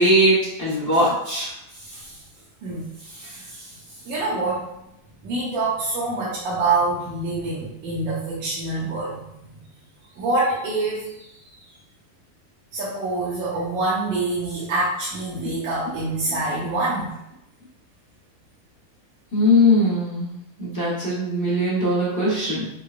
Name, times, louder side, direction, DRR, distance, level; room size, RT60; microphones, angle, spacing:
voice 1, 0.0-1.5 15.6-15.7 19.3-22.7, left 1 dB, 20° left, -9 dB, 0.5 m, -20 dB
voice 2, 1.7-2.2 2.6-3.8 4.0-4.7 5.2-9.2 10.2-11.2 12.7-17.2, right 2 dB, 70° right, -8 dB, 1.4 m, -26 dB
4.5 x 2.3 x 2.5 m, 0.83 s
omnidirectional pair, 2.4 m